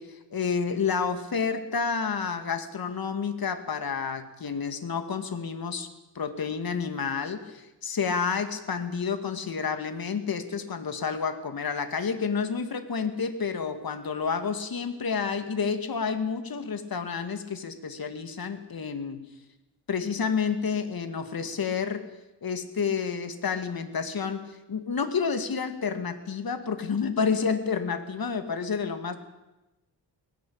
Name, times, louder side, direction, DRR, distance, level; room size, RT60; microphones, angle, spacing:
voice 1, 0.0-5.9 6.2-19.3 19.9-22.1 22.4-29.2, left 6 dB, 55° left, 8 dB, 2.2 m, -30 dB
19.5 x 17.5 x 8.7 m, 1.0 s
wide cardioid pair, 120°, 42 cm